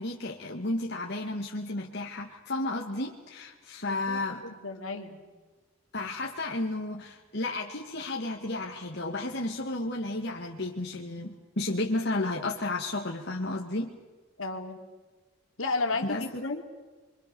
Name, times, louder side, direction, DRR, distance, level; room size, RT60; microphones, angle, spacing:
voice 1, 0.0-4.4 5.9-13.9 16.0-16.4, left 2 dB, 55° left, 0 dB, 2.0 m, -32 dB
voice 2, 3.9-5.2 14.4-14.8 15.6-16.6, left 3 dB, 75° left, 4 dB, 3.0 m, -33 dB
28.5 x 24.0 x 7.0 m, 1.2 s
head